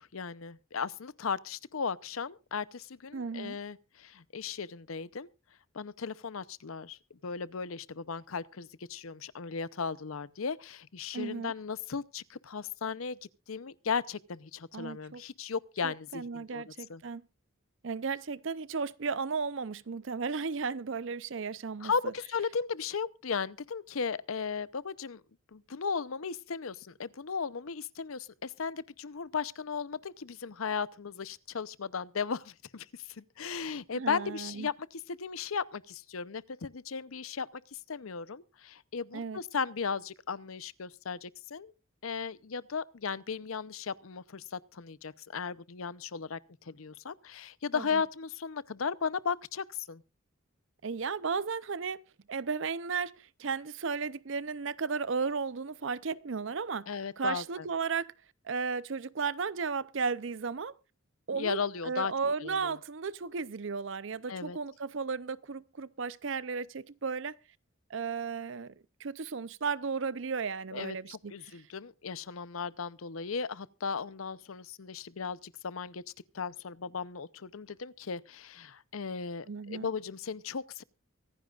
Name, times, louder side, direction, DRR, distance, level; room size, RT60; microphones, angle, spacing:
voice 1, 0.0-5.3 5.7-7.0 7.2-13.2 13.5-16.6 16.9-17.0 21.8-25.2 25.5-32.9 33.2-41.7 42.0-46.4 46.7-50.0 56.9-57.7 61.4-62.1 62.4-62.7 64.3-64.6 70.7-76.0 76.3-80.8, left 5 dB, 85° left, 0.7 m, -36 dB
voice 2, 3.1-3.6 11.1-11.5 14.7-15.2 15.8-17.2 17.8-22.1 33.9-34.7 39.1-39.4 47.7-48.0 50.8-58.1 58.4-60.7 61.3-67.3 67.9-68.7 69.0-71.6 79.5-79.9, right 5 dB, 65° right, 0.6 m, -35 dB
24.0 x 10.5 x 2.4 m
head